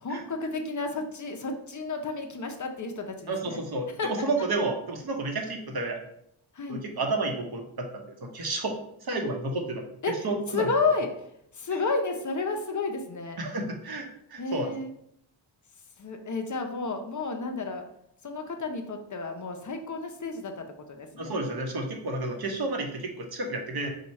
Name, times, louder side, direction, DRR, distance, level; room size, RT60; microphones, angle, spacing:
voice 1, 0.0-3.6 4.0-4.2 6.5-6.8 10.0-11.3 11.5-13.4 14.4-14.9 16.0-17.8 18.2-21.4, left 3 dB, 35° left, 4 dB, 0.7 m, -31 dB
voice 2, 3.3-6.0 6.7-8.7 9.0-9.8 10.2-10.7 13.4-14.7 21.2-23.9, right 2 dB, 50° right, 2 dB, 0.9 m, -31 dB
4.7 x 2.3 x 4.1 m, 0.74 s
wide cardioid pair, 85°, 49 cm